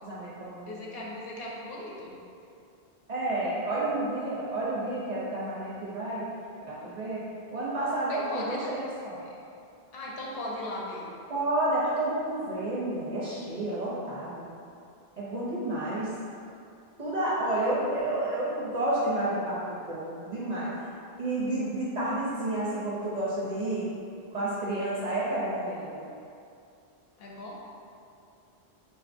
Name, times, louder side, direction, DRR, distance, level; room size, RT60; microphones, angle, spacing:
voice 1, 0.0-0.7 3.1-6.3 6.6-7.2 7.5-9.2 11.3-14.4 15.2-16.1 17.0-23.9 24.3-26.0, right 1 dB, 55° right, -8 dB, 0.5 m, -30 dB
voice 2, 0.7-2.1 8.1-8.7 9.3-9.4 9.9-11.0 27.2-27.6, left 1 dB, 70° left, -4 dB, 0.8 m, -38 dB
3.6 x 2.4 x 2.5 m, 2.5 s
omnidirectional pair, 1.1 m